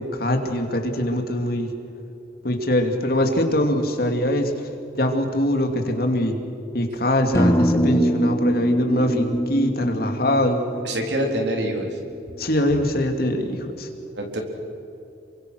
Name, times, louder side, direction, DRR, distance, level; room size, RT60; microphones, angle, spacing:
voice 1, 0.0-1.7 2.4-4.5 4.9-6.4 6.7-10.6 12.4-13.9, left 1 dB, 55° left, 5 dB, 2.5 m, -22 dB
sound 1, 7.3-11.5, equal, 15° left, 1.1 m, -23 dB
voice 2, 10.8-12.0 14.2-14.4, right 1 dB, 65° right, 2 dB, 3.9 m, -25 dB
28.0 x 24.0 x 6.4 m, 2.8 s
head